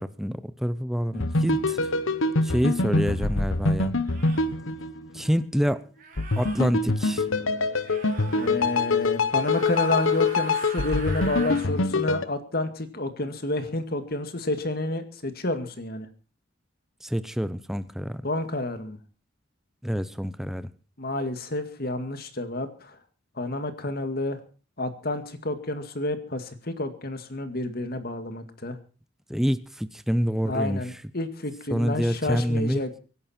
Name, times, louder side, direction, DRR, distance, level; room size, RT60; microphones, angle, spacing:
voice 1, 0.0-1.8 2.4-4.0 5.1-5.8 6.4-7.2 17.0-18.2 19.8-20.7 29.3-30.8 31.7-32.8, equal, ahead, 0.8 m, -27 dB
sound 1, 1.1-5.4 6.2-12.2, left 3 dB, 85° left, 1.1 m, -25 dB
sound 2, 2.7-2.8 4.0-4.5 6.0-6.6 7.8-8.5 9.3-11.7, right 5 dB, 45° right, 3.7 m, -41 dB
voice 2, 8.4-16.1 18.2-19.0 21.0-23.0 23.4-24.4 24.8-28.8 30.5-33.0, left 2 dB, 50° left, 2.1 m, -30 dB
24.5 x 11.0 x 4.4 m
head